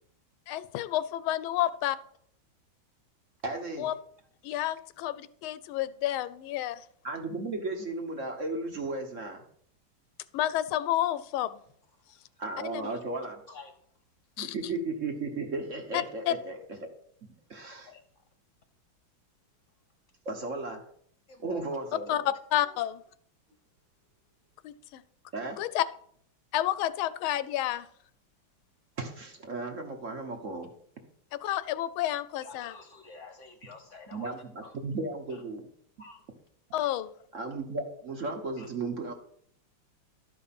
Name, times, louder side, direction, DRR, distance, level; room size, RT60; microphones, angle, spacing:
voice 1, 0.5-2.0 3.8-3.9 4.4-6.8 10.3-11.6 12.7-12.8 14.4-14.5 16.3-16.4 22.1-22.2 22.5-23.0 24.6-25.0 25.6-25.8 26.5-27.8 31.3-32.7 36.7-37.1, left 13 dB, 85° left, 15 dB, 1.4 m, -30 dB
voice 2, 3.4-3.9 7.0-9.4 12.4-13.4 14.4-16.8 17.5-17.9 20.2-20.8 21.4-22.2 25.3-25.6 29.0-30.7 34.1-34.4 34.8-35.7 37.3-39.1, right 3 dB, 45° right, 4 dB, 1.1 m, -35 dB
voice 3, 11.9-12.4 12.8-13.8 17.9-18.0 21.3-21.7 22.6-22.8 23.5-23.6 32.4-34.4 34.6-34.7 35.3-35.4 36.0-36.2 38.6-38.7, left 4 dB, 50° left, 7 dB, 1.0 m, -50 dB
12.0 x 5.2 x 5.7 m, 0.65 s
omnidirectional pair, 2.2 m